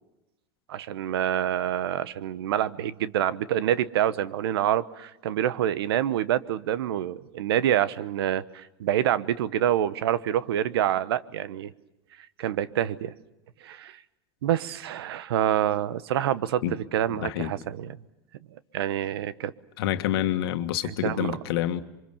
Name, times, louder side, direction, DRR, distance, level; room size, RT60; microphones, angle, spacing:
voice 1, 0.7-11.7 12.4-13.1 13.6-14.0 14.4-16.6 16.9-18.0 18.7-19.5 20.8-21.4, right 11 dB, 85° right, 1.1 m, -27 dB
voice 2, 17.2-17.5 19.8-21.8, left 12 dB, 80° left, 1.7 m, -27 dB
27.5 x 24.5 x 6.9 m
supercardioid pair, 110°, 13 cm